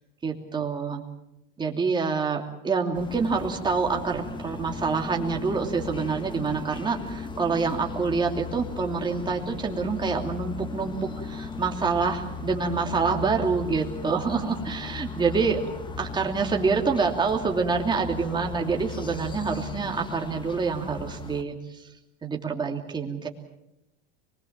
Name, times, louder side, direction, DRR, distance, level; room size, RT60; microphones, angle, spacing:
voice 1, 0.2-1.0 1.6-15.6 16.0-21.6 22.2-23.3, right 4 dB, 15° right, 2 dB, 2.8 m, -27 dB
sound 1, 2.9-21.4, left 4 dB, 15° left, 1.7 m, -37 dB
25.5 x 21.0 x 7.4 m, 0.87 s
supercardioid pair, 135°, 29 cm